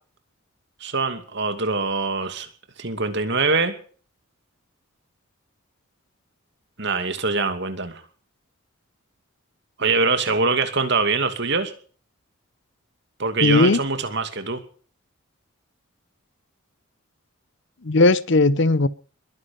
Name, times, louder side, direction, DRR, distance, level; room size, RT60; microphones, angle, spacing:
voice 1, 0.8-2.5 2.8-3.7 6.8-8.0 9.8-11.7 13.2-14.6, right 4 dB, 55° right, 2.6 m, -23 dB
voice 2, 13.4-13.8 17.8-18.9, left 2 dB, 55° left, 0.8 m, -17 dB
21.5 x 10.5 x 5.5 m
head